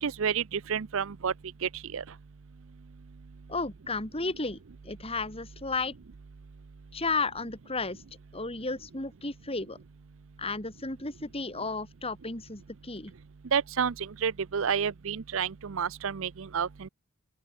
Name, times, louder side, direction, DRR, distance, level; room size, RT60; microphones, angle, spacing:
voice 1, 0.0-1.3 1.6-2.0 13.5-16.9, right 7 dB, 60° right, 0.5 m, -30 dB
voice 2, 3.5-4.6 4.8-5.9 6.9-8.0 8.3-9.8 10.4-13.1, left 3 dB, 25° left, 3.1 m, -33 dB
open air
head